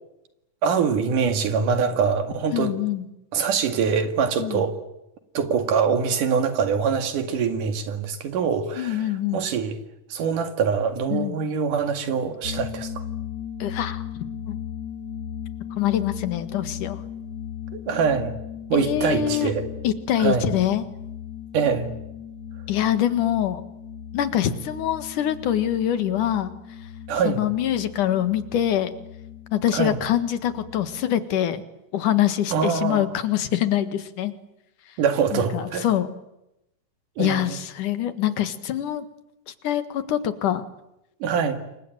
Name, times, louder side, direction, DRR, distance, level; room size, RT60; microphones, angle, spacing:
voice 1, 0.6-2.7 3.3-4.8 5.4-9.1 9.3-9.8 10.1-13.0 17.7-18.3 18.7-19.7 20.2-20.4 21.5-21.9 27.1-27.4 29.7-30.0 32.5-33.1 35.0-35.9 37.2-37.6 41.2-41.6, right 6 dB, 85° right, 3.7 m, -24 dB
voice 2, 2.5-3.0 4.4-4.6 8.8-9.4 11.1-11.4 13.6-14.6 15.7-17.0 18.7-19.5 19.8-20.9 22.7-23.6 24.1-26.5 27.2-28.9 29.5-31.6 31.9-34.3 35.3-36.1 37.2-39.1 39.5-40.6, left 11 dB, 80° left, 3.2 m, -24 dB
sound 1, 12.4-31.1, left 9 dB, 55° left, 3.6 m, -37 dB
27.5 x 23.5 x 9.1 m
omnidirectional pair, 3.6 m